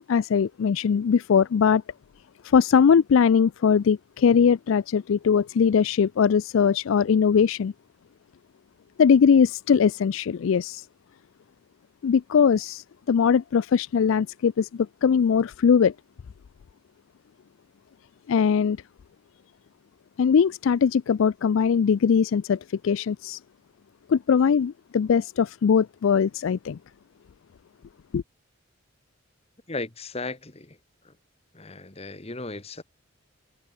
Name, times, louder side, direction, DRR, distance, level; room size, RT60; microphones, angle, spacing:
voice 1, 0.1-1.8 2.4-7.7 9.0-10.9 12.0-15.9 18.3-18.8 20.2-23.4 24.1-26.8 28.1-28.2, left 6 dB, 65° left, 0.4 m, -21 dB
voice 2, 29.7-30.8 31.0-31.1 31.5-32.8, left 3 dB, 30° left, 1.5 m, -36 dB
head